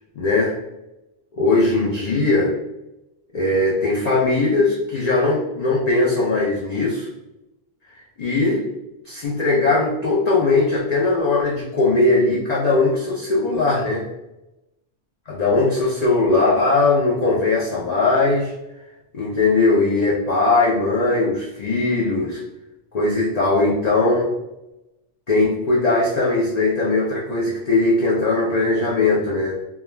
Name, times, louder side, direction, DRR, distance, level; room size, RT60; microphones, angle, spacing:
voice 1, 0.2-0.6 1.3-2.5 3.3-7.1 7.9-8.7 9.0-14.1 15.3-18.5 19.1-22.4 22.9-24.3 25.3-29.6, left 3 dB, 55° left, -5 dB, 0.4 m, -19 dB
2.3 x 2.2 x 3.1 m, 0.95 s
omnidirectional pair, 1.2 m